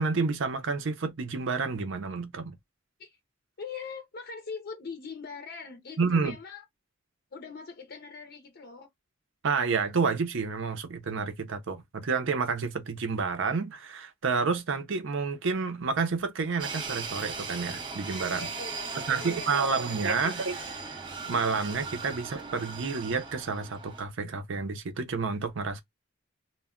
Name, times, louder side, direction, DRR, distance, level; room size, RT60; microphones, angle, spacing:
voice 1, 0.0-2.6 6.0-6.4 9.4-18.5 19.0-20.6 21.3-25.8, right 4 dB, 65° right, 0.6 m, -29 dB
voice 2, 3.6-6.6 7.3-8.9 18.3-20.0 20.2-21.0, left 5 dB, 50° left, 0.6 m, -42 dB
sound 1, 16.6-24.0, right 4 dB, 25° right, 0.6 m, -38 dB
2.2 x 2.1 x 3.6 m
head